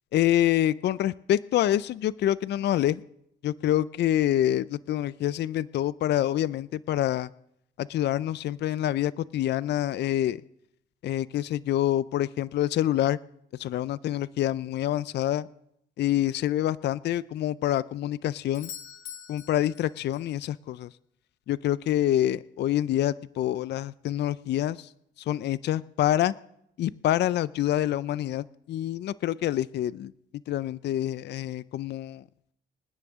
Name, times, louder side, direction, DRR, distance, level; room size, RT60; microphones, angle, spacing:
voice 1, 0.1-3.0 3.4-7.3 7.8-10.4 11.0-13.2 13.6-15.5 16.0-18.7 19.3-20.9 21.5-24.9 25.2-26.3 26.8-30.1 30.5-32.2, left 12 dB, 60° left, 18 dB, 0.4 m, -26 dB
Doorbell, 18.5-20.4 24.5-24.6, left 9 dB, 85° left, 1.3 m, -44 dB
26.0 x 9.8 x 3.6 m, 0.77 s
cardioid pair, 90°, 20 cm